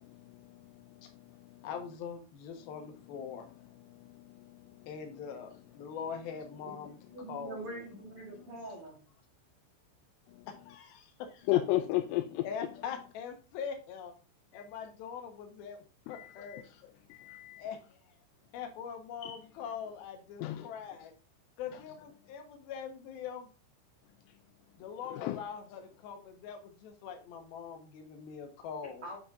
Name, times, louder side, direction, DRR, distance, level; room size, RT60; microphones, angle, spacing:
voice 1, 1.6-3.5 4.9-7.0 7.3-7.9 10.5-11.6 12.4-14.1 14.5-15.8 16.1-16.6 17.6-18.0 18.5-21.1 21.6-23.5 24.8-29.1, left 7 dB, 70° left, 2.5 m, -42 dB
voice 2, 7.1-9.0 29.0-29.2, right 2 dB, 75° right, 1.2 m, -43 dB
voice 3, 11.5-12.4 14.5-14.6 16.1-16.6 17.1-17.6 19.2-19.4 20.4-20.7 25.1-25.4, left 15 dB, 90° left, 3.2 m, -32 dB
8.6 x 4.4 x 3.7 m
omnidirectional pair, 5.7 m